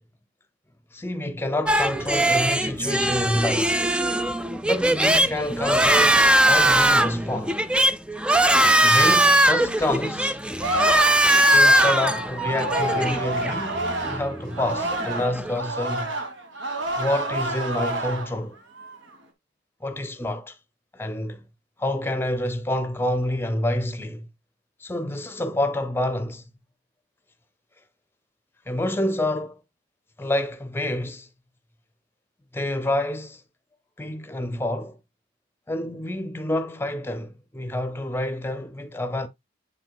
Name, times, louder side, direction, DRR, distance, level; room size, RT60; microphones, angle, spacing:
voice 1, 0.9-3.8 4.6-7.6 8.8-10.4 11.5-16.1 17.0-18.6 19.8-20.6 20.9-21.4 21.8-24.3 24.8-26.4 28.7-29.6 30.2-31.3 32.5-33.4 34.0-35.0 35.7-39.3, left 1 dB, 10° left, 0.8 m, -28 dB
sound 1, 1.7-15.6, right 1 dB, 5° right, 0.3 m, -20 dB
Singing, 10.6-15.3 15.6-18.4 18.8-19.1, right 2 dB, 65° right, 1.5 m, -29 dB
8.2 x 6.0 x 2.3 m
head